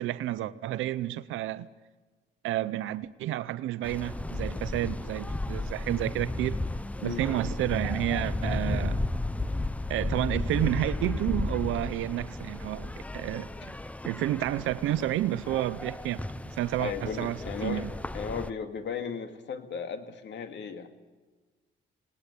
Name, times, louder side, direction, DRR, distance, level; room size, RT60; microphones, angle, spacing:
voice 1, 0.0-1.7 2.4-6.6 7.0-9.0 9.9-13.5 14.0-16.2 16.6-17.9, right 14 dB, 85° right, 0.7 m, -30 dB
sound 1, 3.8-18.5, left 2 dB, 5° left, 0.5 m, -34 dB
voice 2, 16.8-20.9, left 6 dB, 65° left, 2.2 m, -36 dB
19.5 x 18.5 x 8.4 m
cardioid pair, 90°, 20 cm